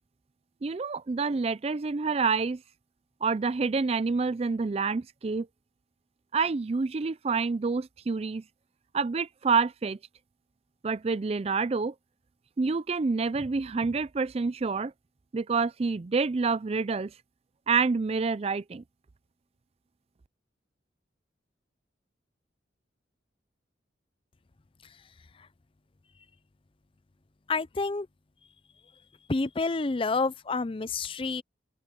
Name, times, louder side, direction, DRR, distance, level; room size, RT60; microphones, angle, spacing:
voice 1, 0.6-2.6 3.2-5.5 6.3-8.4 8.9-10.0 10.8-11.9 12.6-14.9 15.3-17.1 17.7-18.8, right 4 dB, 35° right, 0.4 m, -27 dB
voice 2, 27.5-28.1 29.3-31.4, left 3 dB, 30° left, 0.5 m, -29 dB
open air
head